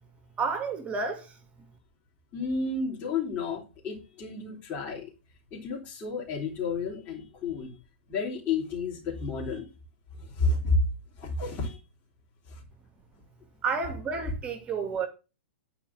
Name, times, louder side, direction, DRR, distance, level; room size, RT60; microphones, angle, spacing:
voice 1, 0.4-1.3 13.6-15.1, right 5 dB, 20° right, 2.3 m, -30 dB
voice 2, 2.3-5.1 5.5-7.8 8.1-9.7 10.2-10.8 11.2-11.8 12.5-12.6, left 3 dB, 30° left, 3.9 m, -31 dB
10.0 x 5.1 x 6.4 m
figure-of-eight pair, 110°, 6 cm